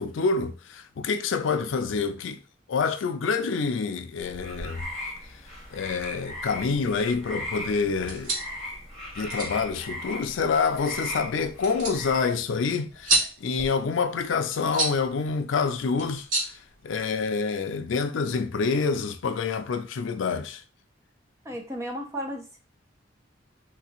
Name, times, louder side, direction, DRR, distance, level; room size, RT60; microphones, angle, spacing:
voice 1, 0.0-2.4 2.7-4.9 5.7-8.3 9.2-16.3 16.8-20.6, left 5 dB, 75° left, 0.4 m, -27 dB
sound 1, 4.2-12.3, left 1 dB, 5° left, 1.4 m, -38 dB
sound 2, 7.9-17.4, right 2 dB, 90° right, 1.5 m, -33 dB
voice 2, 21.4-22.6, equal, 15° right, 0.7 m, -34 dB
3.3 x 2.9 x 2.9 m
head